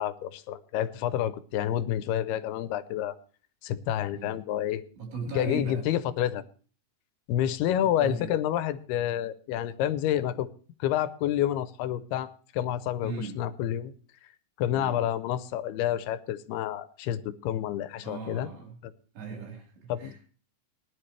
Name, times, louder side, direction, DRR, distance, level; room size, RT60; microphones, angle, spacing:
voice 1, 0.0-3.2 3.6-4.8 5.3-6.4 7.3-10.5 10.8-13.9 14.6-18.5 19.9-20.3, left 11 dB, 80° left, 13 dB, 2.7 m, -29 dB
voice 2, 5.0-5.8 7.8-8.3 13.0-13.4 14.7-15.1 18.0-18.8 19.1-20.2, right 4 dB, 85° right, 0 dB, 6.1 m, -38 dB
19.5 x 10.5 x 3.3 m, 0.40 s
omnidirectional pair, 4.6 m